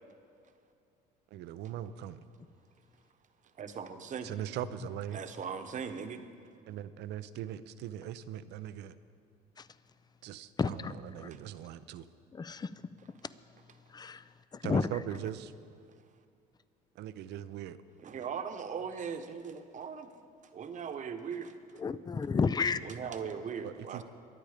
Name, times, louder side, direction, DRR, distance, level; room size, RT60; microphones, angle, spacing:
voice 1, 1.3-2.2 4.2-5.2 6.7-9.0 10.2-12.1 14.6-15.5 17.0-17.8 23.6-24.0, right 11 dB, 70° right, 13 dB, 0.6 m, -40 dB
voice 2, 3.6-4.3 5.1-6.2 18.0-20.1 20.5-21.6 22.8-24.0, right 6 dB, 45° right, 8 dB, 1.2 m, -39 dB
voice 3, 10.6-11.3 12.3-12.7 13.9-14.2 14.5-14.9 21.8-22.8, left 5 dB, 25° left, 16 dB, 0.5 m, -31 dB
23.0 x 8.8 x 5.0 m, 2.4 s
supercardioid pair, 95°, 18 cm